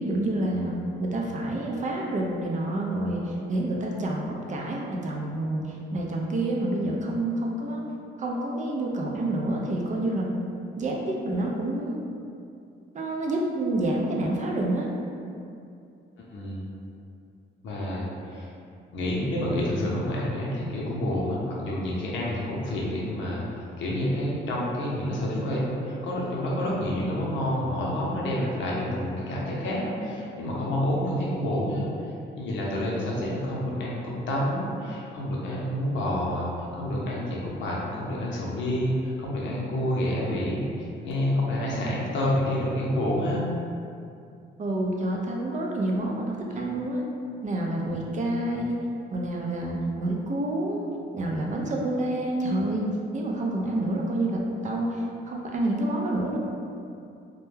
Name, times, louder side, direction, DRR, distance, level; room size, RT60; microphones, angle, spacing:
voice 1, 0.0-7.8 8.2-10.5 10.8-12.0 12.9-14.9 44.6-47.0 47.4-48.8 49.1-50.8 51.1-56.4, right 1 dB, 40° right, -1 dB, 0.4 m, -28 dB
voice 2, 16.3-16.7 17.6-18.5 18.9-36.5 36.7-43.4, left 1 dB, 70° left, -5 dB, 0.6 m, -28 dB
2.2 x 2.1 x 3.1 m, 2.5 s
cardioid pair, 90°, 20 cm